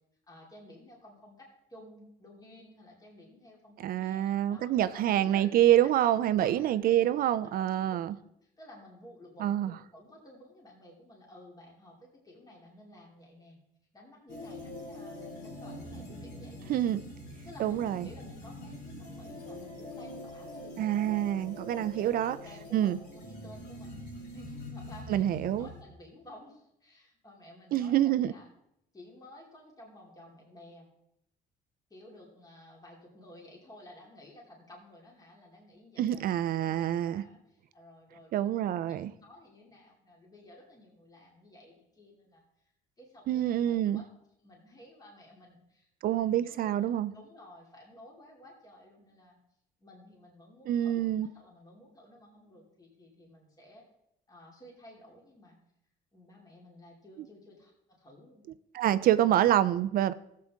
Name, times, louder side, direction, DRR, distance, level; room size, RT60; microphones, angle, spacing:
voice 1, 0.3-5.8 6.2-13.6 13.9-17.0 17.4-28.4 28.9-30.9 31.9-42.4 43.0-44.1 44.4-49.4 49.8-53.8 54.3-55.6 56.1-58.4, left 1 dB, 20° left, 2.8 m, -54 dB
voice 2, 3.8-8.1 9.4-9.7 16.7-17.0 17.6-18.1 20.8-22.4 22.7-23.0 25.1-25.7 27.7-28.3 36.0-37.2 38.3-39.1 43.3-44.0 46.0-47.1 50.7-51.3 58.7-60.1, right 12 dB, 60° right, 0.5 m, -26 dB
sound 1, 14.3-25.8, left 1 dB, 75° left, 4.0 m, -44 dB
15.5 x 7.8 x 3.6 m
cardioid pair, 110°, 17 cm